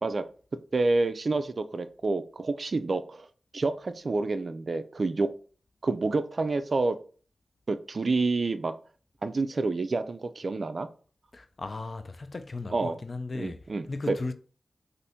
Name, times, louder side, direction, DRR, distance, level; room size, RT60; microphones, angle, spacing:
voice 1, 0.7-3.3 3.5-5.3 5.8-7.0 7.7-8.7 9.2-10.9 12.7-13.0 13.3-14.2, right 3 dB, 60° right, 0.3 m, -28 dB
voice 2, 11.3-13.6 13.9-14.3, left 3 dB, 50° left, 0.3 m, -36 dB
2.6 x 2.5 x 3.4 m
cardioid pair, 45°, 0 cm